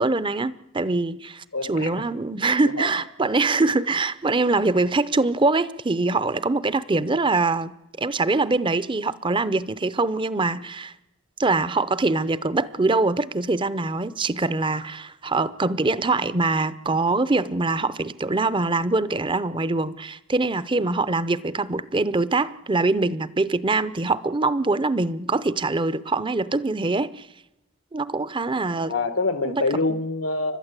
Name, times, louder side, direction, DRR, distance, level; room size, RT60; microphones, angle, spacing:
voice 1, 0.0-7.7 8.0-10.9 11.4-27.3 27.9-28.9 29.4-29.6, right 3 dB, 25° right, 0.7 m, -23 dB
voice 2, 1.5-2.0 2.8-2.9 28.8-30.6, left 3 dB, 85° left, 1.7 m, -26 dB
30.0 x 12.5 x 8.2 m
head